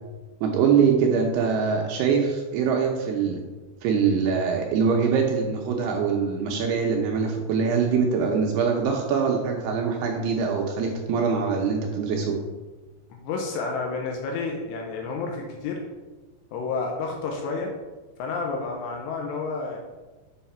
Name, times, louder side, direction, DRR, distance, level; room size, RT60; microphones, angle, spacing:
voice 1, 0.4-3.4 3.8-12.4, right 6 dB, 80° right, 1 dB, 2.5 m, -23 dB
voice 2, 13.1-15.8 16.5-17.7 18.2-19.8, left 4 dB, 85° left, 1 dB, 2.9 m, -30 dB
7.1 x 5.7 x 4.2 m, 1.2 s
omnidirectional pair, 5.1 m